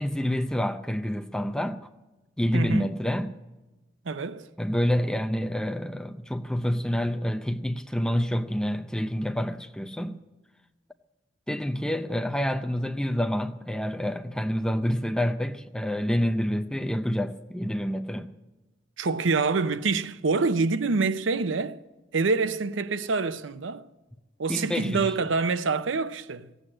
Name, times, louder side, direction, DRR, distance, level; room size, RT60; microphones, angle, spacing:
voice 1, 0.0-1.9 2.4-3.3 4.6-10.2 11.5-18.3 24.5-25.1, equal, 5° left, 0.5 m, -28 dB
voice 2, 2.5-2.9 4.1-4.5 19.0-21.8 22.1-23.9 24.4-26.5, right 4 dB, 85° right, 0.6 m, -26 dB
15.5 x 8.2 x 8.7 m
head